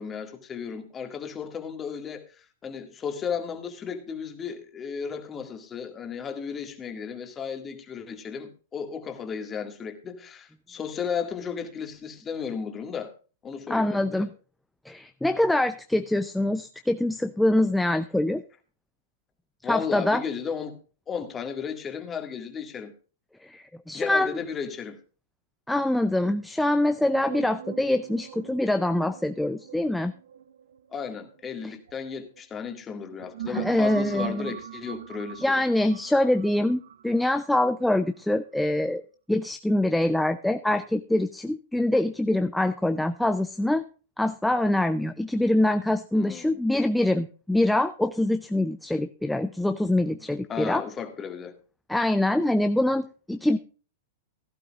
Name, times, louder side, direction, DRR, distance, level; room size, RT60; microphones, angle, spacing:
voice 1, 0.0-13.1 13.4-14.3 19.6-20.8 21.1-22.9 23.9-25.0 30.9-35.6 46.1-46.6 50.5-51.5, left 6 dB, 20° left, 2.0 m, -34 dB
voice 2, 13.7-14.3 14.9-18.4 19.6-20.2 23.4-24.4 25.7-30.1 31.6-31.8 33.5-34.5 35.4-39.0 39.3-43.8 44.2-50.8 51.9-53.6, left 1 dB, 5° left, 0.5 m, -24 dB
sound 1, 27.1-32.4 33.0-38.0, right 11 dB, 75° right, 0.6 m, -41 dB
16.0 x 11.5 x 2.4 m
hypercardioid pair, 125°, 0 cm